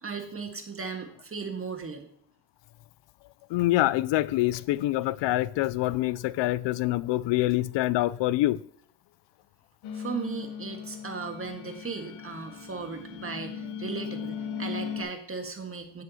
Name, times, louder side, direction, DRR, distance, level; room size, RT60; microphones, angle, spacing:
voice 1, 0.0-2.1 9.9-16.0, right 4 dB, 25° right, 1.6 m, -37 dB
voice 2, 3.5-8.6, left 16 dB, 65° left, 0.5 m, -25 dB
sound 1, 9.8-15.0, left 7 dB, 85° left, 1.1 m, -38 dB
10.5 x 7.6 x 2.8 m
supercardioid pair, 70°, 48 cm